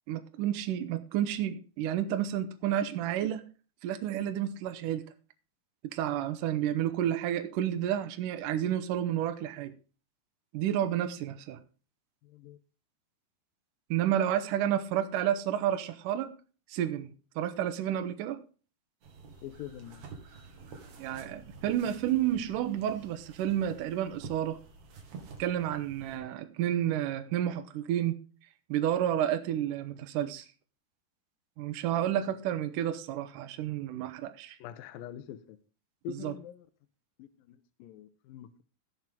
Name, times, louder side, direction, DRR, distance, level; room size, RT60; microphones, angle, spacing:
voice 1, 0.1-3.4 3.8-5.0 5.9-9.7 10.5-11.6 13.9-16.3 16.7-18.4 21.0-24.6 25.4-28.2 28.7-30.5 31.6-34.6 36.1-36.3, right 11 dB, 85° right, 1.9 m, -30 dB
voice 2, 12.2-12.6 19.4-20.0 26.1-26.3 32.0-32.2 34.6-35.6 36.0-36.7 37.2-38.6, left 10 dB, 85° left, 2.0 m, -45 dB
sound 1, 19.0-26.2, right 4 dB, 50° right, 2.8 m, -49 dB
17.0 x 6.0 x 3.8 m
omnidirectional pair, 5.1 m